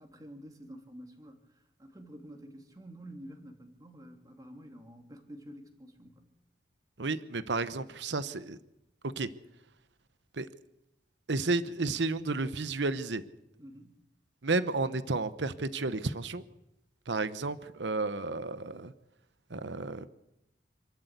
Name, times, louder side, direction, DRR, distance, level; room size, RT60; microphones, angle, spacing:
voice 1, 0.0-6.2 13.6-13.9, equal, 20° right, 3 dB, 2.7 m, -49 dB
voice 2, 7.0-8.6 9.0-9.3 10.3-10.5 11.3-13.2 14.4-16.4 17.1-18.9 19.5-20.1, right 3 dB, 80° right, 13 dB, 1.0 m, -32 dB
27.5 x 12.0 x 8.2 m, 0.87 s
head